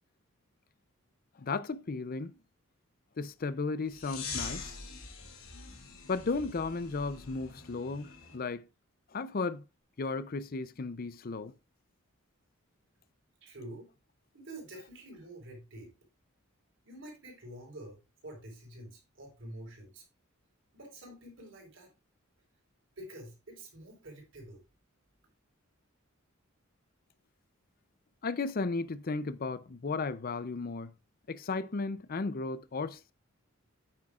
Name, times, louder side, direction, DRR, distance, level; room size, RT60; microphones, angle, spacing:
voice 1, 1.4-2.4 3.2-4.7 6.1-8.6 9.1-9.6 10.0-11.5 28.2-30.9 31.3-33.1, left 3 dB, 45° left, 0.5 m, -35 dB
sound 1, 3.9-8.4, left 5 dB, 85° left, 2.3 m, -44 dB
voice 2, 13.4-13.9 14.3-15.9 16.9-20.0 20.7-21.9 23.0-24.6, right 1 dB, 60° right, 4.1 m, -47 dB
9.7 x 8.9 x 2.4 m
head